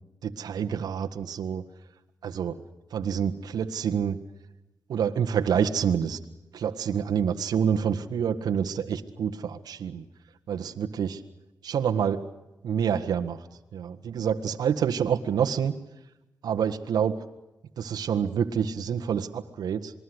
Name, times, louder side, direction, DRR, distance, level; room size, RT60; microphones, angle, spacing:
voice 1, 0.2-1.6 2.2-2.6 2.9-4.2 4.9-6.2 6.5-10.0 10.5-11.2 11.6-12.3 12.6-13.4 13.7-15.7 16.4-17.3 17.8-19.9, right 7 dB, 80° right, 5 dB, 1.7 m, -27 dB
27.5 x 21.0 x 8.1 m, 0.98 s
cardioid pair, 70°, 7 cm